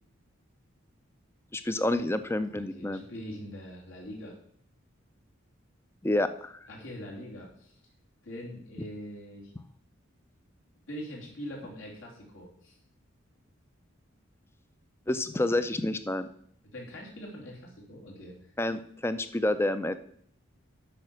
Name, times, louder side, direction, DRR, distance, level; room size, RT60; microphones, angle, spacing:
voice 1, 1.5-3.0 6.0-6.7 15.1-16.3 18.6-20.0, left 1 dB, 10° left, 11 dB, 0.5 m, -29 dB
voice 2, 2.5-4.4 6.7-7.8 8.2-9.5 10.9-12.8 16.7-18.5, equal, 75° left, -2 dB, 3.1 m, -43 dB
8.8 x 5.9 x 6.4 m, 0.65 s
head